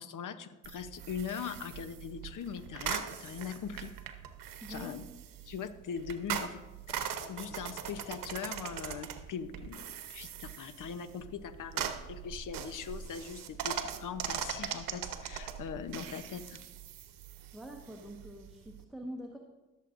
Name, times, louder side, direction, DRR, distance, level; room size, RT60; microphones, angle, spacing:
voice 1, 0.0-3.9 4.7-5.0 5.4-6.6 6.9-16.6, left 7 dB, 65° left, 12 dB, 0.9 m, -41 dB
sound 1, 0.6-18.8, right 9 dB, 80° right, 0.9 m, -41 dB
voice 2, 4.6-4.9 17.1-17.2 17.5-19.4, equal, ahead, 0 dB, 1.3 m, -45 dB
17.5 x 7.6 x 2.6 m, 1.2 s
supercardioid pair, 55°, 33 cm